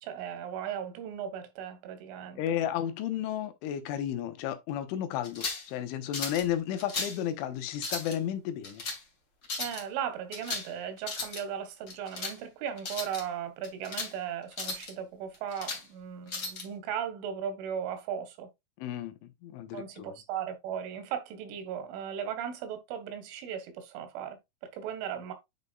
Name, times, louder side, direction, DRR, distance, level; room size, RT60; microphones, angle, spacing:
voice 1, 0.0-2.4 9.6-18.5 19.7-24.4 24.7-25.3, right 8 dB, 85° right, 4.1 m, -37 dB
voice 2, 2.4-8.8 18.8-19.1 19.4-20.1, left 10 dB, 85° left, 3.5 m, -33 dB
sound 1, 5.2-5.7 6.1-6.5 6.8-7.2 7.7-8.2 8.6-9.0 9.4-9.8 10.3-10.7 11.0-11.4 11.9-12.4 12.8-13.2 13.6-14.1 14.5-14.9 15.3-15.8 16.3-16.6, left 3 dB, 40° left, 1.4 m, -36 dB
10.5 x 5.4 x 2.5 m
omnidirectional pair, 5.4 m